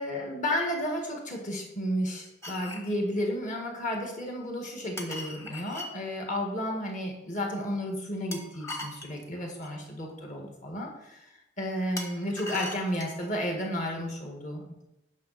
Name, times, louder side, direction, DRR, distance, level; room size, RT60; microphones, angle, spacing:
voice 1, 0.0-11.2 11.6-14.8, equal, 40° left, 1 dB, 1.8 m, -32 dB
sound 1, 2.4-2.9 5.0-5.9 8.3-9.8 12.0-13.3, left 1 dB, 15° left, 1.1 m, -39 dB
9.4 x 6.0 x 4.2 m, 0.89 s
head